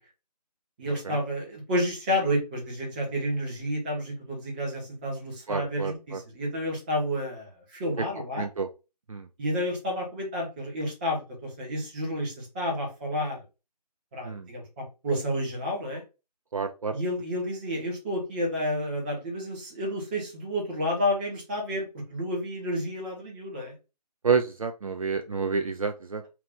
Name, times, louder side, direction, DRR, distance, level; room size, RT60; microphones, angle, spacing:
voice 1, 0.8-8.5 9.4-13.4 14.1-16.0 16.9-23.7, equal, 15° right, -1 dB, 0.9 m, -30 dB
voice 2, 5.5-6.2 8.0-8.1 8.4-8.7 9.1-9.3 14.2-14.5 16.5-17.0 24.2-26.3, right 5 dB, 55° right, 6 dB, 0.4 m, -29 dB
2.9 x 2.4 x 3.7 m, 0.29 s
figure-of-eight pair, 155°, 21 cm